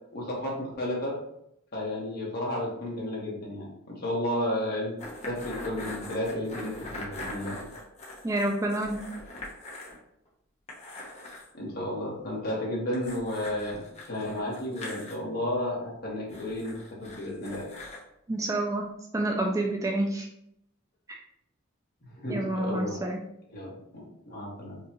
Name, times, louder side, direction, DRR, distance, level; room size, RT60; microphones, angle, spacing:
voice 1, 0.1-1.2 1.7-4.9 5.3-7.5 11.5-13.8 14.1-17.6 22.1-23.0 23.5-24.8, left 1 dB, 50° left, -4 dB, 1.4 m, -32 dB
sound 1, 5.0-10.0 10.3-10.4 10.7-11.5 12.9-15.1 16.3-18.0, left 1 dB, 30° left, 0.8 m, -42 dB
voice 2, 8.2-9.0 18.3-18.8 19.1-20.3 21.1-21.2 22.3-23.2, right 1 dB, 15° right, 1 dB, 0.3 m, -28 dB
5.1 x 2.4 x 2.9 m, 0.78 s
head